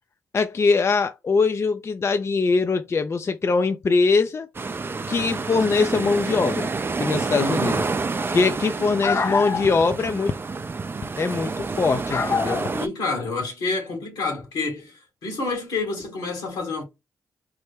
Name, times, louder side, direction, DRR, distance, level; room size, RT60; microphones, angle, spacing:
voice 1, 0.3-4.5 5.1-6.7 7.0-7.8 8.3-10.3 11.2-12.7, left 4 dB, 40° left, 0.4 m, -22 dB
sound 1, 4.5-12.9, right 4 dB, 30° right, 0.4 m, -28 dB
voice 2, 7.4-7.8 12.7-16.8, left 3 dB, 80° left, 1.5 m, -28 dB
3.2 x 2.2 x 3.1 m
hypercardioid pair, 40°, 7 cm